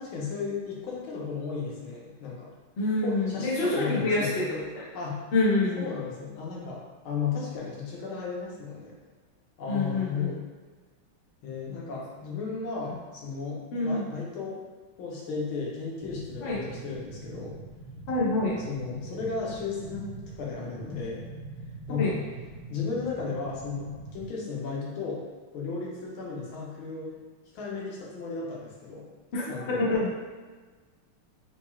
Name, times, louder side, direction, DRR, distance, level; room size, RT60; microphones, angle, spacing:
voice 1, 0.0-2.5 3.0-4.4 4.9-5.2 5.8-8.9 9.6-10.4 11.4-14.6 15.0-17.5 18.7-21.2 21.9-22.1 22.7-25.2 25.5-27.2 27.5-29.0 29.5-30.0, left 5 dB, 80° left, -3 dB, 1.6 m, -34 dB
voice 2, 2.8-4.9 5.3-5.9 9.7-10.3 13.7-14.1 16.4-16.7 18.1-18.6 22.0-22.1 29.3-29.5 29.8-30.1, left 2 dB, 50° left, -6 dB, 0.7 m, -26 dB
sound 1, 16.0-24.3, right 3 dB, 85° right, 0.3 m, -44 dB
4.3 x 3.1 x 2.3 m, 1.4 s
omnidirectional pair, 2.3 m